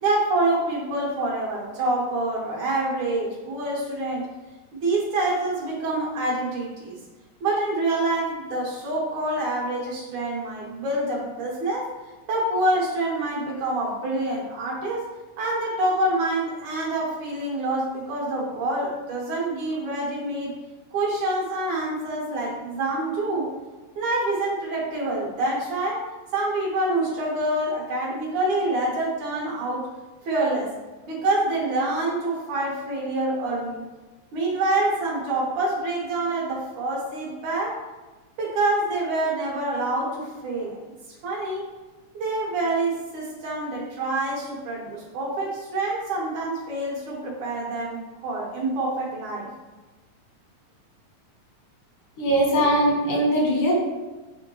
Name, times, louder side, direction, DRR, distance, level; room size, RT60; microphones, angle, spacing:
voice 1, 0.0-4.2 4.7-7.0 7.4-11.9 12.3-15.1 15.4-20.5 20.9-23.5 24.0-26.0 26.3-29.8 30.3-30.7 31.1-33.8 34.3-37.7 38.4-40.8 41.2-41.6 42.1-49.5, right 2 dB, 70° right, -4 dB, 3.0 m, -26 dB
voice 2, 52.2-53.7, equal, 85° left, -3 dB, 3.2 m, -21 dB
8.7 x 3.6 x 3.1 m, 1.2 s
omnidirectional pair, 3.6 m